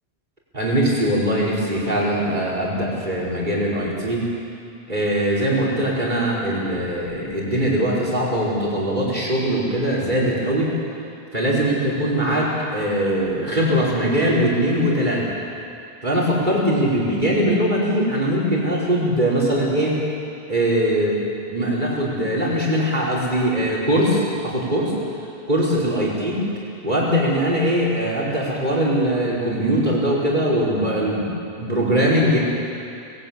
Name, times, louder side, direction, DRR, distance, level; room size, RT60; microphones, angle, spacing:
voice 1, 0.5-4.2 4.9-10.7 11.3-15.3 16.0-20.0 20.5-21.1 21.5-24.9 25.5-26.4 26.8-31.3 31.6-32.4, right 1 dB, 45° right, -5 dB, 5.0 m, -21 dB
20.5 x 16.5 x 8.8 m, 2.6 s
omnidirectional pair, 1.1 m